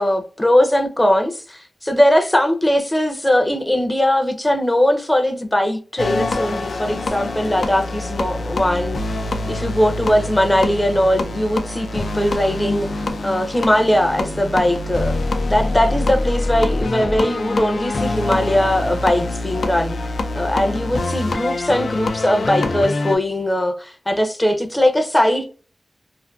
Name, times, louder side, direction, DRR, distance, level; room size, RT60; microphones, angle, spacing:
voice 1, 0.0-9.0 9.5-15.2 15.5-20.0 20.3-25.6, left 1 dB, 15° left, 0.5 m, -19 dB
sound 1, 6.0-23.2, left 2 dB, 90° left, 0.3 m, -25 dB
2.5 x 2.5 x 2.3 m
wide cardioid pair, 105°, 0 cm